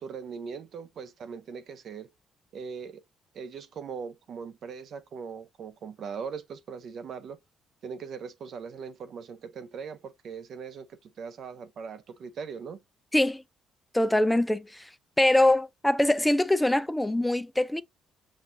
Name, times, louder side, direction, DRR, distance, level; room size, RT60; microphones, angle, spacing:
voice 1, 0.0-2.1 2.5-3.0 3.3-7.4 7.8-12.8, right 6 dB, 60° right, 0.6 m, -40 dB
voice 2, 13.9-14.9 15.2-17.8, left 1 dB, 10° left, 0.3 m, -23 dB
6.1 x 2.4 x 2.6 m
cardioid pair, 95°, 0 cm